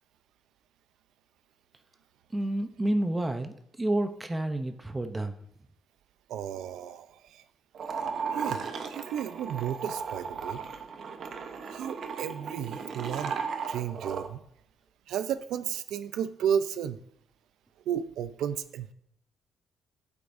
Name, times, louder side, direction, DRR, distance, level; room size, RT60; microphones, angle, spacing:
voice 1, 2.3-5.4, right 1 dB, 15° right, 8 dB, 0.7 m, -30 dB
voice 2, 6.3-7.4 8.3-8.6 8.9-10.6 11.7-13.3 13.7-14.4 15.1-17.0 17.9-18.9, right 9 dB, 85° right, 12 dB, 0.6 m, -33 dB
sound 1, 7.7-14.3, right 5 dB, 50° right, 1.0 m, -36 dB
14.5 x 8.3 x 2.7 m, 0.71 s
cardioid pair, 130°, 0 cm